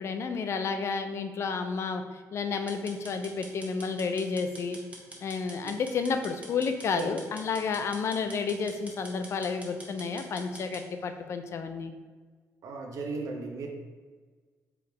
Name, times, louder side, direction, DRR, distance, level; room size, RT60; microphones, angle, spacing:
voice 1, 0.0-2.0 2.3-4.8 5.2-11.9, left 5 dB, 50° left, 7 dB, 0.4 m, -31 dB
sound 1, 2.7-10.8, right 1 dB, 25° right, 0.8 m, -46 dB
voice 2, 12.6-13.7, right 3 dB, 65° right, 2 dB, 0.7 m, -35 dB
4.6 x 3.4 x 3.3 m, 1.5 s
cardioid pair, 135°, 6 cm